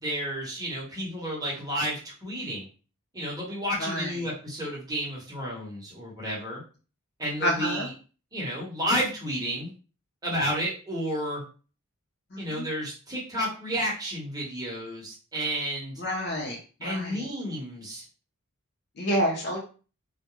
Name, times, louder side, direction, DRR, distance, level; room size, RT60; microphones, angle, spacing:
voice 1, 0.0-2.7 3.1-6.6 7.2-7.9 8.3-9.7 10.2-11.4 12.4-16.0 16.8-18.0, equal, 15° right, -5 dB, 1.1 m, -31 dB
voice 2, 3.8-4.3 7.4-7.9 12.3-12.7 16.0-17.3 19.0-19.6, equal, 50° left, -1 dB, 0.7 m, -29 dB
2.4 x 2.2 x 3.0 m, 0.36 s
head